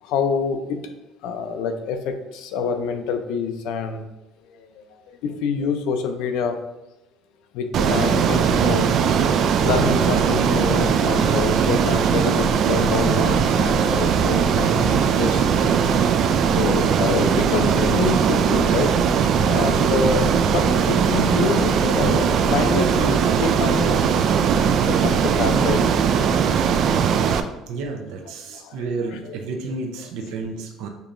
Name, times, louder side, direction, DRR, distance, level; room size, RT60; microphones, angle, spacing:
voice 1, 0.0-0.8 1.2-4.0 4.6-6.6 7.5-15.8 16.6-18.9 19.4-24.1 24.8-25.8 28.5-29.4 29.6-30.1, left 5 dB, 75° left, 7 dB, 0.5 m, -27 dB
Ocean, 7.7-27.4, right 7 dB, 50° right, 0.3 m, -19 dB
voice 2, 27.7-30.9, right 3 dB, 80° right, 3 dB, 0.7 m, -31 dB
6.7 x 2.9 x 2.5 m, 1.0 s
cardioid pair, 155°, 0 cm